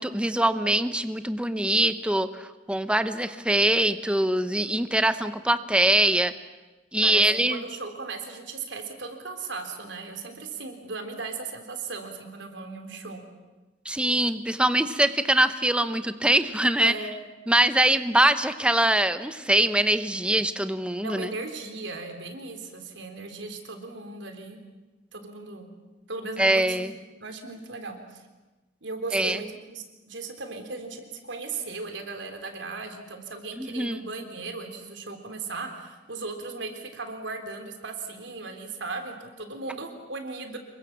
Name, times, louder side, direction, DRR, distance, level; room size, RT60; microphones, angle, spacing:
voice 1, 0.0-6.3 6.9-7.6 13.8-16.9 17.5-21.3 26.4-26.9 29.1-29.4 33.6-34.1, right 1 dB, 5° right, 11 dB, 0.9 m, -23 dB
voice 2, 7.5-13.2 16.8-17.1 21.0-24.6 25.1-25.7 26.1-28.2 28.8-40.6, right 3 dB, 75° right, 5 dB, 3.8 m, -37 dB
27.0 x 23.5 x 7.4 m, 1.2 s
head